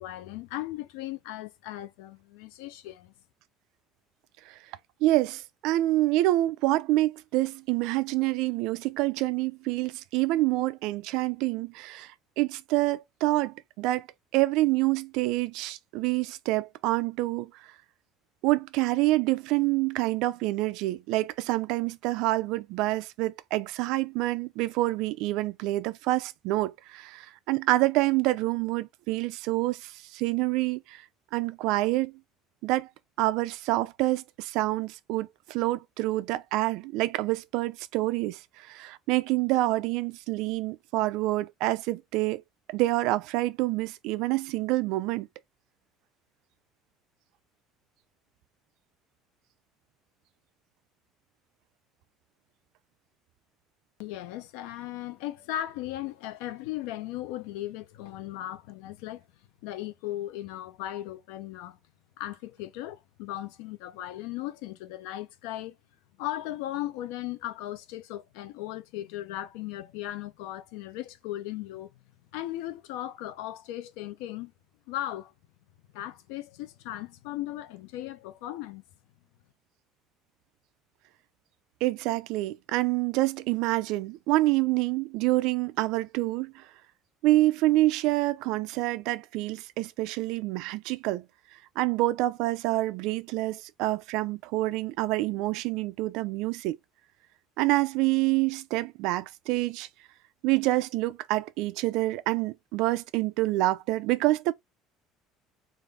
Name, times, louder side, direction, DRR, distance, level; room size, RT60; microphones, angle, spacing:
voice 1, 0.0-3.1 54.0-59.2 59.6-61.8 62.2-65.8 66.2-71.9 72.3-74.5 74.9-75.3 75.9-78.8, left 14 dB, 90° left, 0.6 m, -37 dB
voice 2, 5.0-14.1 14.3-17.5 18.4-31.0 31.3-32.1 32.6-32.9 33.2-42.4 42.7-45.3 81.8-86.6 87.2-91.3 91.8-96.8 97.6-99.9 100.4-104.5, right 18 dB, 65° right, 0.5 m, -27 dB
3.8 x 2.6 x 3.4 m
cardioid pair, 165°, 0 cm